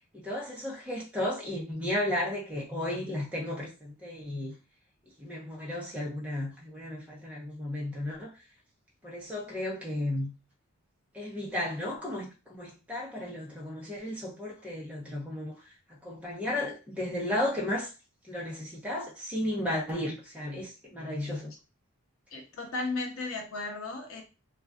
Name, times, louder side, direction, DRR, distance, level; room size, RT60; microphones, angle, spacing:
voice 1, 0.1-4.5 5.2-8.3 9.0-10.3 11.1-15.5 15.9-17.9 18.3-21.5, left 1 dB, 5° right, 0.7 m, -34 dB
voice 2, 22.3-24.2, left 3 dB, 75° left, 0.7 m, -35 dB
2.5 x 2.3 x 2.3 m
head